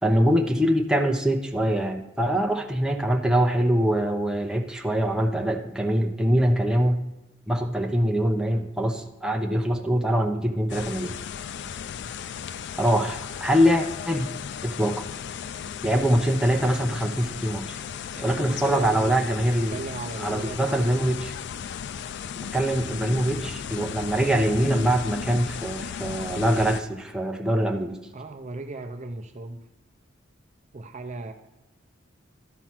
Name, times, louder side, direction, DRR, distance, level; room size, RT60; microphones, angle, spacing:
voice 1, 0.0-7.0 7.5-11.2 12.8-14.3 14.6-15.0 15.8-17.8 18.2-19.8 20.2-21.3 22.5-28.0, equal, 5° right, 2 dB, 0.8 m, -23 dB
sound 1, 10.7-26.8, left 7 dB, 60° left, 0.4 m, -35 dB
voice 2, 18.1-19.3 19.7-21.0 28.1-29.7 30.7-31.3, right 3 dB, 40° right, 6 dB, 0.6 m, -36 dB
12.5 x 4.5 x 5.9 m, 1.0 s
head